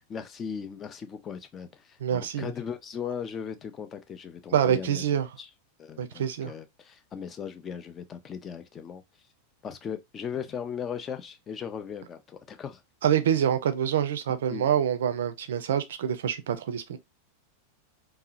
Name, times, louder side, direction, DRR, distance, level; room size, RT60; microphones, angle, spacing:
voice 1, 0.0-5.0 5.4-5.5 5.8-9.0 9.6-12.8 14.5-14.7, left 7 dB, 25° left, 0.4 m, -38 dB
voice 2, 2.0-2.5 4.5-5.3 6.0-6.5 13.0-17.0, right 9 dB, 60° right, 0.4 m, -26 dB
2.7 x 2.0 x 2.4 m
figure-of-eight pair, 90°, 0 cm